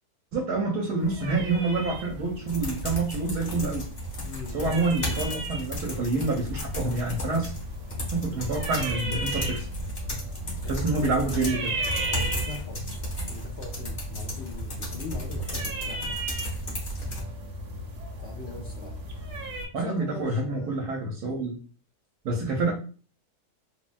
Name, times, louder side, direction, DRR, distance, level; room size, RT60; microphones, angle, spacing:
voice 1, 0.3-3.9 4.5-7.5 8.1-9.7 10.6-11.8 19.7-21.6 22.2-22.7, right 3 dB, 85° right, -1 dB, 1.1 m, -27 dB
sound 1, 1.0-19.7, right 1 dB, 65° right, 1.0 m, -36 dB
sound 2, 2.5-17.2, equal, 35° left, 0.8 m, -34 dB
voice 2, 4.2-5.3 8.2-8.5 10.6-11.1 12.0-12.8 13.3-16.2 18.2-19.0 19.8-20.8, left 4 dB, 75° left, 0 dB, 0.6 m, -41 dB
3.3 x 2.1 x 2.4 m, 0.39 s
omnidirectional pair, 1.6 m